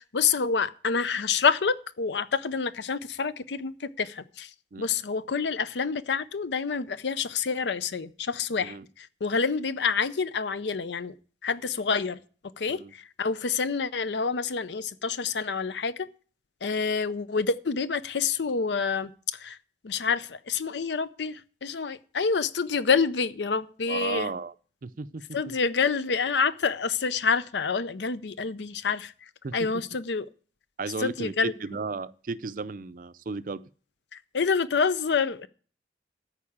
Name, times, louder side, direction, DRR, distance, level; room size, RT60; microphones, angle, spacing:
voice 1, 0.0-4.5 4.8-11.1 11.4-12.2 12.6-16.1 16.6-19.6 19.8-24.3 25.3-29.1 29.5-30.3 31.0-31.5 34.3-35.5, left 5 dB, 80° left, 0.6 m, -27 dB
voice 2, 23.9-24.5 24.8-25.5 29.4-29.8 30.8-33.6, right 4 dB, 50° right, 0.5 m, -35 dB
13.5 x 4.7 x 8.6 m
head